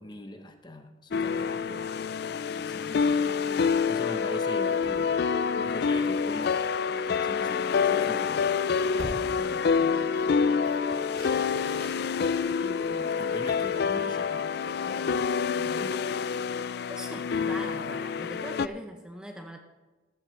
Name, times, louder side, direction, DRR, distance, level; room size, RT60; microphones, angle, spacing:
voice 1, 0.0-2.0 2.5-3.0 3.9-5.1 5.6-6.6 6.9-8.5 8.8-10.3 11.2-11.7 12.6-16.1, left 1 dB, 25° left, 6 dB, 0.9 m, -42 dB
sound 1, 1.1-18.7, left 6 dB, 60° left, 0.4 m, -27 dB
sound 2, 4.8-13.2, equal, 75° right, 2.9 m, -47 dB
voice 2, 16.9-19.6, equal, 5° right, 3 dB, 0.7 m, -41 dB
14.5 x 13.5 x 3.2 m, 1.2 s
head